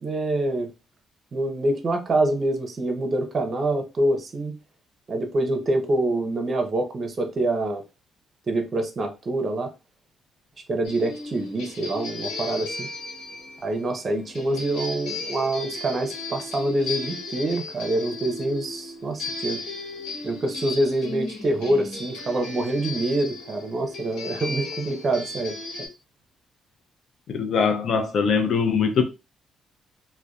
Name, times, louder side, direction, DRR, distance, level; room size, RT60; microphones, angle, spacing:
voice 1, 0.0-0.7 1.3-4.6 5.1-7.8 8.5-9.7 10.7-12.9 13.6-19.6 20.2-25.6, right 2 dB, 40° right, 0.6 m, -26 dB
sound 1, 10.8-25.9, left 3 dB, 90° left, 1.0 m, -35 dB
voice 2, 27.3-29.0, left 6 dB, 60° left, 0.4 m, -22 dB
2.6 x 2.1 x 2.3 m
cardioid pair, 90°, 0 cm